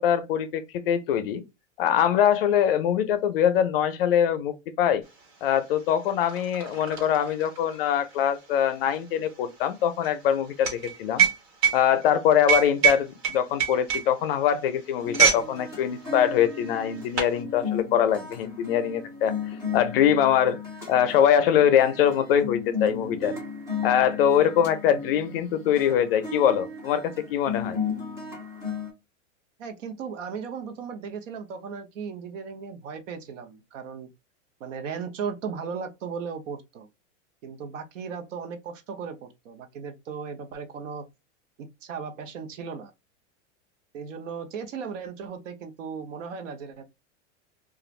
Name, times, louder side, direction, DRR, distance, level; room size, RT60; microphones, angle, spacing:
voice 1, 0.0-1.4 1.8-5.0 5.4-11.3 11.7-19.3 19.7-20.6 20.9-23.3 23.8-27.8, left 9 dB, 50° left, 0.5 m, -23 dB
sound 1, 5.2-5.3 5.5-15.5 15.8-16.1 16.7-17.4, right 7 dB, 60° right, 1.3 m, -25 dB
sound 2, 15.0-28.9, left 6 dB, 10° right, 0.4 m, -35 dB
voice 2, 29.6-34.1 34.6-36.9 37.4-41.0 41.6-42.9 43.9-46.8, right 6 dB, 80° right, 0.8 m, -36 dB
2.4 x 2.4 x 3.1 m
supercardioid pair, 170°, 38 cm